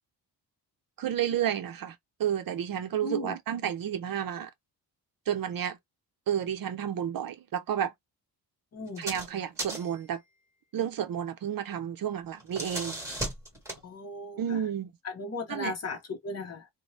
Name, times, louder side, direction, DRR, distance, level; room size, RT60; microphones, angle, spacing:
voice 1, 1.0-4.5 5.3-5.8 6.3-7.9 9.0-10.2 10.7-13.0 14.4-14.9 15.5-15.7, right 9 dB, 55° right, 0.6 m, -31 dB
voice 2, 3.0-3.4 8.7-9.1 13.8-14.6 15.0-16.7, left 3 dB, 35° left, 0.8 m, -37 dB
sound 1, 8.9-9.3 9.6-10.0 12.2-13.8, right 1 dB, 5° right, 1.3 m, -36 dB
2.6 x 2.1 x 3.1 m
wide cardioid pair, 155°, 42 cm